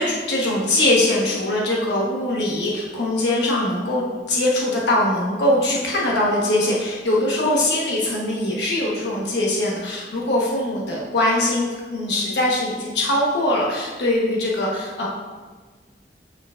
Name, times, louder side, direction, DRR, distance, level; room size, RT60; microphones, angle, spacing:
voice 1, 0.0-15.1, left 1 dB, 80° left, -4 dB, 1.1 m, -22 dB
7.9 x 6.7 x 2.5 m, 1.4 s
head